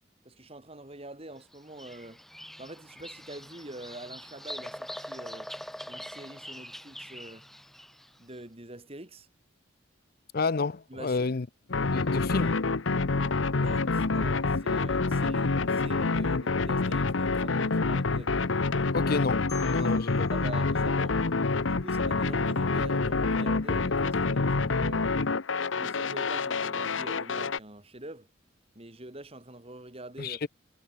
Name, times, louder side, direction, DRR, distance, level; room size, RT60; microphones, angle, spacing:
voice 1, 0.2-2.2 2.6-5.5 5.9-7.5 8.2-9.3 10.9-11.3 13.6-18.4 19.8-19.9 20.3-21.2 21.6-25.1 25.7-28.3 28.7-30.5, right 1 dB, 30° right, 2.7 m, -45 dB
Bird vocalization bird call bird song, 1.5-8.2, equal, ahead, 2.0 m, -43 dB
voice 2, 10.3-11.5 11.8-12.6 18.9-20.3 30.2-30.5, left 4 dB, 50° left, 0.6 m, -30 dB
sound 1, 11.7-27.6, left 3 dB, 90° left, 1.0 m, -27 dB
Marimba xylophone, 19.5-22.3, left 5 dB, 20° left, 5.2 m, -50 dB
head